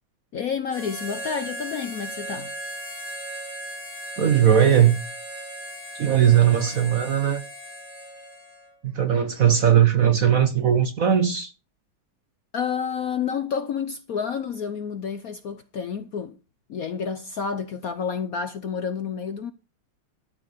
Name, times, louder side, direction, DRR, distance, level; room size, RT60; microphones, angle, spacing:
voice 1, 0.3-2.5 12.5-16.4 16.7-19.5, left 6 dB, 60° left, 0.9 m, -29 dB
Harmonica, 0.7-8.7, right 1 dB, 35° right, 7.3 m, -37 dB
voice 2, 4.2-5.0 6.0-7.4 8.8-11.5, right 9 dB, 55° right, 1.1 m, -19 dB
12.5 x 6.9 x 6.6 m
omnidirectional pair, 2.3 m